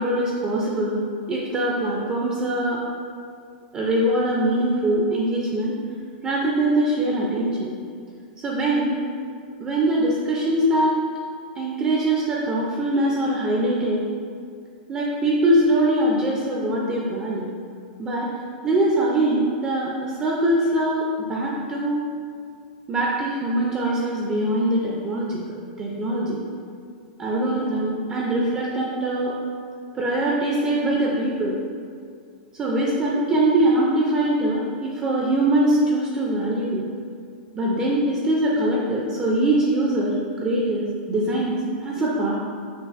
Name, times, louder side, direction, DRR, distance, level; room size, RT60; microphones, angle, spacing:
voice 1, 0.0-2.8 3.7-5.7 6.2-7.7 8.4-9.0 9.6-11.0 11.6-14.0 14.9-17.5 18.0-18.3 18.6-22.1 22.9-25.4 25.8-26.4 27.2-29.4 29.9-31.5 32.5-36.8 37.5-42.3, right 1 dB, 15° right, -4 dB, 0.4 m, -22 dB
6.3 x 2.4 x 2.4 m, 2.3 s
supercardioid pair, 160°, 5 cm